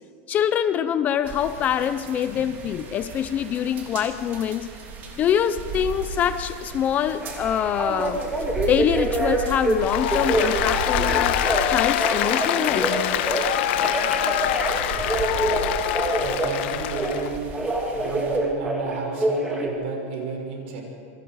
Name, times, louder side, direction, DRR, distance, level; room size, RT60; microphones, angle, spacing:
voice 1, 0.3-4.7 5.1-8.2 8.7-11.4 11.7-12.9, left 9 dB, 20° left, 12 dB, 0.5 m, -24 dB
sound 1, 1.2-18.4, right 3 dB, 25° right, 3.1 m, -36 dB
Telephone, 7.2-9.7 10.1-11.6 11.9-13.5 13.8-17.2 17.5-19.7, right 1 dB, 5° right, 2.2 m, -26 dB
Applause, 9.8-17.3, left 12 dB, 50° left, 1.1 m, -25 dB
voice 2, 16.0-17.4 17.9-20.8, right 4 dB, 55° right, 1 dB, 6.4 m, -32 dB
27.5 x 23.5 x 4.8 m, 2.2 s
supercardioid pair, 175°, 7 cm